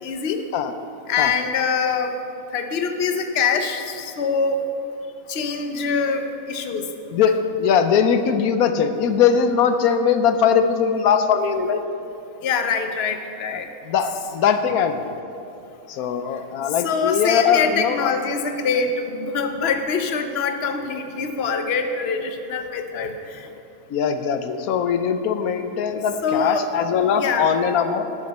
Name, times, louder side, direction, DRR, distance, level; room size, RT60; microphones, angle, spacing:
voice 1, 0.0-0.4 1.1-2.1 2.5-4.7 5.3-6.9 12.4-13.7 16.8-23.1 26.2-26.7 27.2-27.4, left 5 dB, 50° left, 7 dB, 1.0 m, -24 dB
voice 2, 7.1-11.8 13.5-15.1 15.9-18.1 23.9-28.2, left 7 dB, 85° left, 9 dB, 1.2 m, -21 dB
12.5 x 12.5 x 4.2 m, 2.8 s
omnidirectional pair, 1.5 m